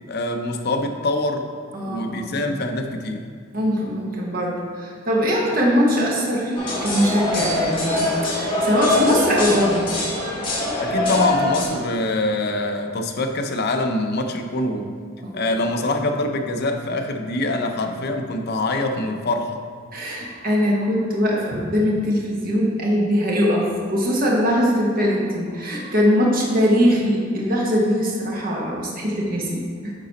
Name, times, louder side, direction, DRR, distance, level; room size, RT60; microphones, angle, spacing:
voice 1, 0.1-1.5 1.8-3.2 10.8-15.0 15.3-19.6, left 2 dB, 55° left, 5 dB, 0.6 m, -24 dB
voice 2, 1.7-2.3 3.5-9.9 15.2-15.5 19.9-29.9, equal, 50° right, -2 dB, 1.2 m, -21 dB
sound 1, 6.5-11.6, left 2 dB, 25° left, 1.7 m, -23 dB
9.0 x 4.1 x 4.1 m, 2.1 s
head